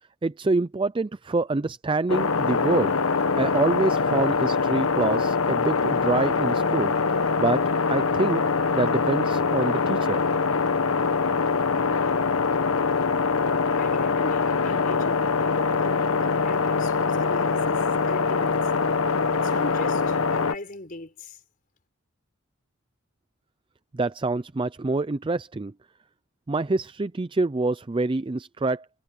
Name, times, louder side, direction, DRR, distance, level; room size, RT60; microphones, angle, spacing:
voice 1, 0.2-2.9 3.4-6.9 7.4-8.4 8.7-10.2 23.9-25.7 26.5-28.9, right 3 dB, 25° right, 0.4 m, -26 dB
sound 1, 2.1-20.6, left 4 dB, 85° left, 1.1 m, -23 dB
voice 2, 13.8-18.7 19.3-21.4, left 2 dB, 40° left, 4.5 m, -38 dB
head